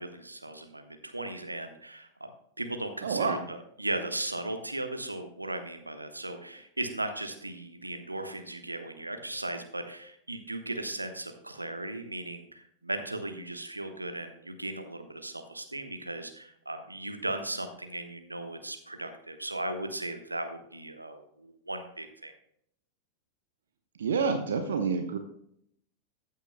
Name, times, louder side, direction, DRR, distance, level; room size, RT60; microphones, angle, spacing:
voice 1, 0.0-2.3 2.6-22.3, right 2 dB, 85° right, 7 dB, 1.1 m, -37 dB
voice 2, 3.0-3.4 24.0-25.2, right 5 dB, 65° right, 7 dB, 0.8 m, -28 dB
14.5 x 8.2 x 2.2 m, 0.71 s
figure-of-eight pair, 90°, 0 cm